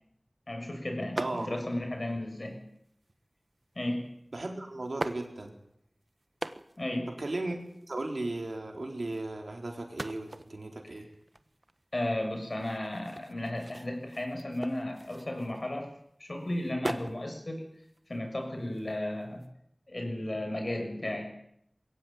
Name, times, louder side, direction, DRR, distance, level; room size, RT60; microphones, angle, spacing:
voice 1, 0.5-2.6 3.7-4.1 6.8-7.1 11.9-15.9 16.2-17.6 18.1-19.4 19.9-21.3, left 1 dB, 55° left, 3 dB, 6.8 m, -34 dB
voice 2, 1.1-1.6 4.3-5.5 7.2-7.6 7.9-11.1, right 2 dB, 80° right, 3 dB, 4.2 m, -36 dB
sound 1, 1.2-1.8 2.6-3.1 4.2-4.3 4.8-5.8 6.2-7.0 7.2-7.3 7.5-8.6 9.8-16.0 16.4-17.2 17.7-19.5, right 2 dB, 50° right, 1.2 m, -41 dB
22.0 x 16.5 x 9.3 m, 0.76 s
wide cardioid pair, 55°, 0 cm